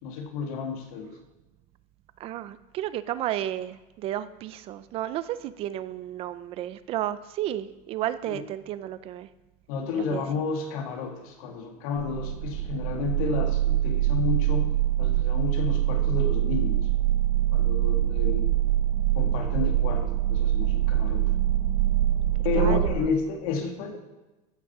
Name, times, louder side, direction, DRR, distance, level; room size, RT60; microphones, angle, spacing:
voice 1, 0.0-1.1 8.3-8.4 9.7-16.8 17.5-18.5 19.2-21.2 22.4-24.0, left 5 dB, 75° left, 3 dB, 2.3 m, -31 dB
voice 2, 2.2-9.3 9.9-10.2 22.5-23.1, right 12 dB, 30° right, 14 dB, 0.4 m, -32 dB
sound 1, 12.0-23.0, right 13 dB, 50° right, 1.1 m, -24 dB
15.0 x 6.4 x 6.0 m, 1.1 s
cardioid pair, 170°, 19 cm